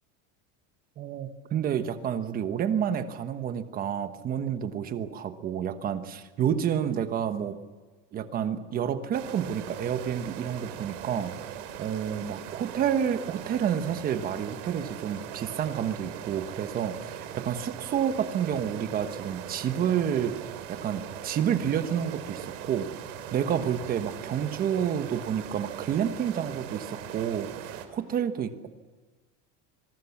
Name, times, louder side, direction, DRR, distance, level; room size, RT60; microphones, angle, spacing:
voice 1, 1.0-7.5 8.1-22.9 23.3-28.7, right 8 dB, 25° right, 9 dB, 1.2 m, -29 dB
sound 1, 9.1-27.9, right 10 dB, 85° right, 3.3 m, -40 dB
25.0 x 23.0 x 7.2 m, 1.4 s
cardioid pair, 175°, 36 cm